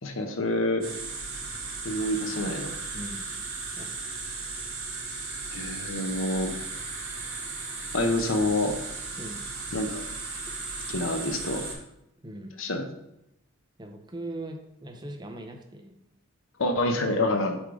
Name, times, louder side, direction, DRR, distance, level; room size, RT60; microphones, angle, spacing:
voice 1, 0.0-0.9 1.8-2.8 5.5-6.5 7.9-8.8 9.7-10.0 10.9-11.7 12.6-12.8 16.6-17.6, left 1 dB, 65° left, 5 dB, 0.8 m, -27 dB
sound 1, 0.8-11.7, right 3 dB, 60° right, 2.5 m, -36 dB
voice 2, 2.9-3.3 3.8-4.0 9.2-9.4 12.2-12.5 13.8-15.9, right 1 dB, 20° right, 3 dB, 0.7 m, -40 dB
6.9 x 3.7 x 4.9 m, 0.84 s
head